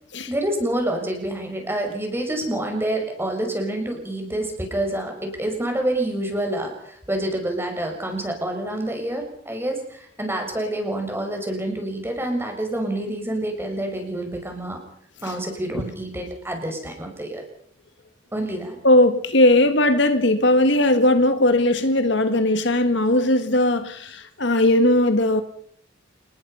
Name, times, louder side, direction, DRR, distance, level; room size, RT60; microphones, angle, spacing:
voice 1, 0.3-14.8 15.2-17.4 18.3-18.8, right 1 dB, 10° right, 6.1 m, -27 dB
voice 2, 18.8-25.4, left 1 dB, 65° left, 1.9 m, -18 dB
29.0 x 19.5 x 5.7 m
head